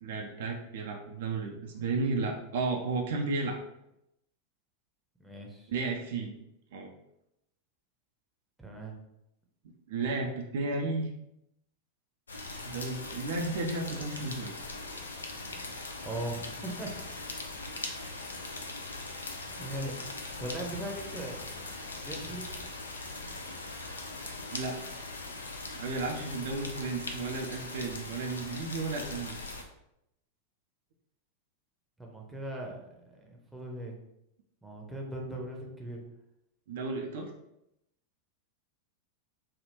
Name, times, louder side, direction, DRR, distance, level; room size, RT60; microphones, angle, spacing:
voice 1, 0.0-3.6 5.7-6.3 6.7-6.9 9.9-11.1 12.6-14.5 24.5-24.8 25.7-29.4 36.7-37.3, right 3 dB, 55° right, 1 dB, 0.4 m, -33 dB
voice 2, 5.2-5.7 8.6-9.0 16.0-16.9 19.6-20.0 20.4-21.4 22.0-22.5 32.0-34.0 34.6-36.0, right 1 dB, 5° right, -1 dB, 0.7 m, -39 dB
sound 1, 12.3-29.6, left 2 dB, 75° left, 0.4 m, -40 dB
3.4 x 2.3 x 2.8 m, 0.82 s
figure-of-eight pair, 90°, 0 cm